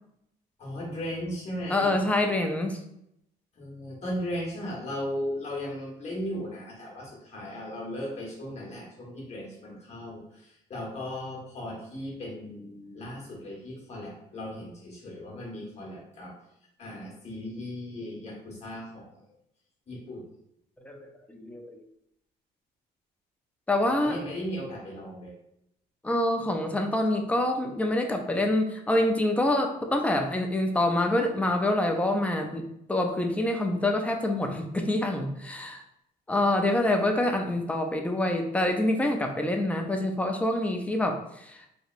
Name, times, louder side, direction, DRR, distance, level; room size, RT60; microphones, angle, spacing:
voice 1, 0.6-2.1 3.5-16.3 16.8-19.2 19.9-20.3 23.9-25.3, left 1 dB, 40° left, -3 dB, 1.4 m, -37 dB
voice 2, 1.7-2.8 20.8-21.8 23.7-24.2 26.0-35.8 36.3-41.7, left 1 dB, 10° left, 3 dB, 0.4 m, -26 dB
3.0 x 2.6 x 2.5 m, 0.78 s
cardioid pair, 110°, 17 cm